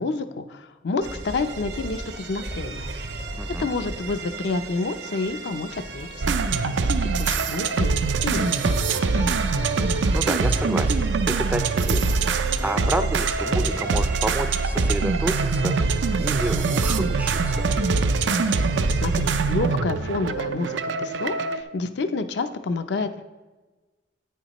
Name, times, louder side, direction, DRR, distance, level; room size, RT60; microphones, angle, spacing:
voice 1, 0.0-2.9 3.6-6.7 7.0-7.9 8.2-9.5 18.4-18.6 18.9-23.2, left 3 dB, 70° left, 8 dB, 0.5 m, -29 dB
sound 1, 1.0-19.4, right 4 dB, 70° right, 0.8 m, -37 dB
voice 2, 3.4-3.7 10.1-12.1 12.4-17.6, right 1 dB, 10° right, 9 dB, 0.4 m, -30 dB
sound 2, 6.2-21.6, right 4 dB, 90° right, 0.5 m, -23 dB
10.0 x 8.7 x 3.0 m, 1.2 s
head